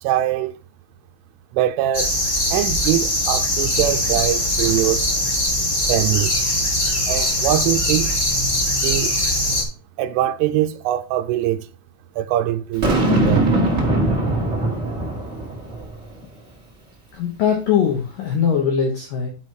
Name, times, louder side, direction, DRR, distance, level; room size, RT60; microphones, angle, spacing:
voice 1, 0.0-0.5 1.5-2.1 2.5-5.1 5.9-6.3 7.1-8.1 8.8-9.1 10.0-11.7 12.2-13.5, right 13 dB, 85° right, 3.0 m, -22 dB
sound 1, 1.9-9.6, left 1 dB, 25° left, 1.2 m, -21 dB
Boom, 12.8-16.1, right 1 dB, 45° right, 0.9 m, -20 dB
voice 2, 17.1-19.3, left 7 dB, 85° left, 1.9 m, -21 dB
10.5 x 4.7 x 4.6 m
omnidirectional pair, 5.7 m